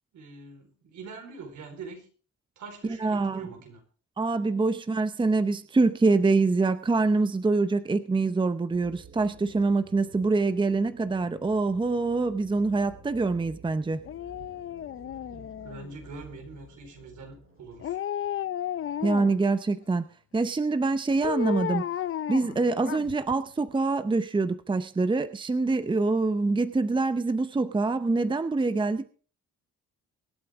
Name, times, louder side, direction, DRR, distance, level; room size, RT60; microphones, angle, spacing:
voice 1, 0.1-2.1 2.6-3.8 15.3-18.0, right 4 dB, 75° right, 3 dB, 4.4 m, -44 dB
voice 2, 3.0-3.5 4.2-14.0 19.0-20.0 20.3-21.9 22.3-29.1, right 3 dB, 15° right, 11 dB, 0.7 m, -25 dB
sound 1, 8.7-18.0, right 3 dB, 50° right, 5.2 m, -52 dB
Dog, 14.0-16.1 17.8-19.5 21.2-23.3 23.7-23.8, left 10 dB, 45° left, 0.6 m, -33 dB
24.5 x 8.5 x 3.6 m, 0.41 s
cardioid pair, 90°, 30 cm